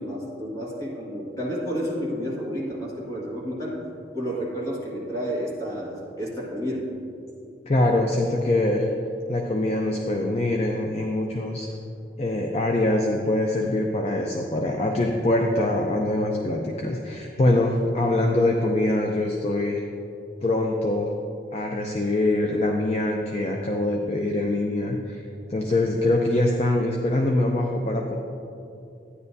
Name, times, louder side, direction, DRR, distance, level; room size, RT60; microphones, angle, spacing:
voice 1, 0.0-3.8 4.1-6.9, equal, 20° left, -5 dB, 1.7 m, -30 dB
voice 2, 7.7-8.9 9.3-11.7 12.2-19.8 20.4-21.1 21.5-28.2, left 1 dB, 35° left, 1 dB, 0.5 m, -24 dB
12.0 x 9.7 x 2.7 m, 2.6 s
head